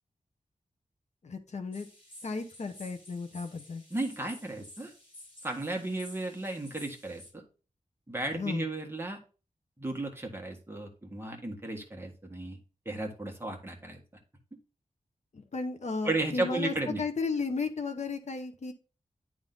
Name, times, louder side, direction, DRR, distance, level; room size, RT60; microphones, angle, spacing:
voice 1, 1.2-1.9 2.2-3.8 8.3-8.7 15.3-18.7, left 4 dB, 60° left, 6 dB, 0.9 m, -34 dB
sound 1, 1.7-7.3, left 1 dB, 45° left, 3.9 m, -52 dB
voice 2, 3.9-4.9 5.4-7.4 8.1-9.2 9.8-12.6 12.8-14.0 16.0-17.0, right 2 dB, 15° right, 1 dB, 1.5 m, -34 dB
10.5 x 3.6 x 3.9 m, 0.35 s
wide cardioid pair, 120°, 13 cm